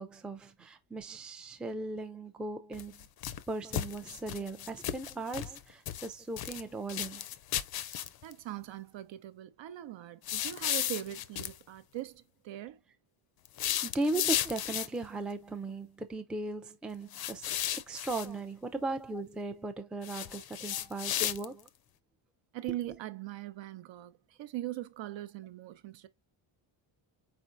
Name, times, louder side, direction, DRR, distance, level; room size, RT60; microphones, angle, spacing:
voice 1, 0.0-3.1 3.5-7.2 13.8-17.5 17.9-21.7, right 2 dB, ahead, 0.4 m, -37 dB
sound 1, 2.7-3.4 3.7-5.6 5.9-6.6 6.9-8.3 10.2-11.5 13.5-15.1 17.1-18.3 20.0-21.7, left 11 dB, 50° left, 0.5 m, -34 dB
voice 2, 8.2-12.8 22.5-26.1, right 14 dB, 65° right, 0.8 m, -41 dB
4.5 x 4.4 x 2.5 m
cardioid pair, 115°, 49 cm